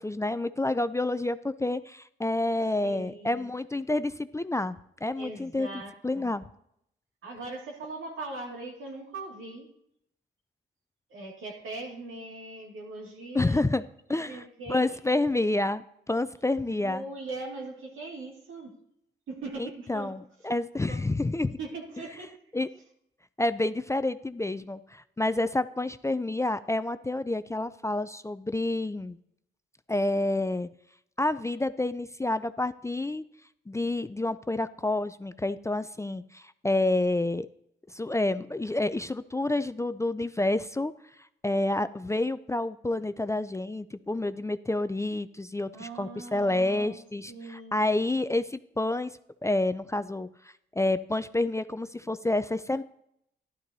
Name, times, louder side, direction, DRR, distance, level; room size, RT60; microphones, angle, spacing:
voice 1, 0.0-4.8 5.0-5.7 6.0-6.5 13.3-13.8 14.1-14.4 14.7-17.0 19.6-21.6 22.5-22.7 23.4-29.2 29.9-30.7 31.2-33.2 33.7-37.5 37.9-40.9 41.4-49.1 49.4-50.3 50.8-52.8, left 2 dB, 15° left, 13 dB, 0.4 m, -29 dB
voice 2, 2.8-3.5 5.2-6.3 7.2-9.7 11.1-13.6 14.1-14.9 16.6-18.7 19.3-20.2 20.9-21.2 21.6-22.4 45.7-47.0 47.3-47.9, right 2 dB, 80° right, 0 dB, 2.2 m, -40 dB
12.0 x 11.5 x 2.7 m, 0.74 s
supercardioid pair, 55°, 21 cm